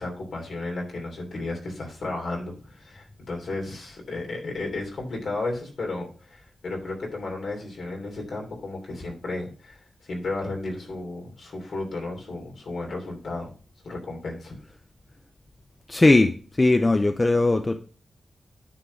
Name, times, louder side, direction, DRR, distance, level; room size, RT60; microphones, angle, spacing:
voice 1, 0.0-13.5 13.8-14.6, left 2 dB, 60° left, -1 dB, 3.1 m, -33 dB
voice 2, 15.9-16.3 16.6-17.8, left 2 dB, 20° left, 7 dB, 0.5 m, -18 dB
9.8 x 3.9 x 6.2 m, 0.39 s
wide cardioid pair, 180°, 0 cm